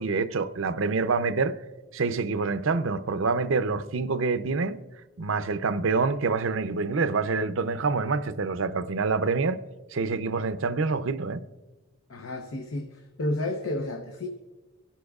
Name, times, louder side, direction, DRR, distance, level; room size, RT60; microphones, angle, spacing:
voice 1, 0.0-1.6 1.9-4.8 5.2-9.6 9.9-11.4, right 4 dB, 65° right, 0.6 m, -26 dB
voice 2, 12.1-14.3, left 1 dB, 75° left, 0.8 m, -31 dB
23.5 x 11.5 x 2.4 m
head